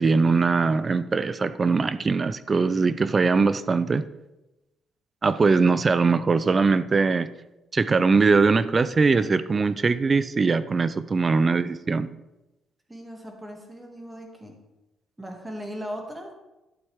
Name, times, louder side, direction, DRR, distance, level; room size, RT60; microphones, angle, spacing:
voice 1, 0.0-4.1 5.2-7.3 7.7-12.1, right 4 dB, 35° right, 15 dB, 0.5 m, -21 dB
voice 2, 12.9-14.6 15.2-16.3, equal, 15° right, 2 dB, 2.3 m, -38 dB
11.5 x 8.1 x 3.6 m, 0.99 s
cardioid pair, 90°, 0 cm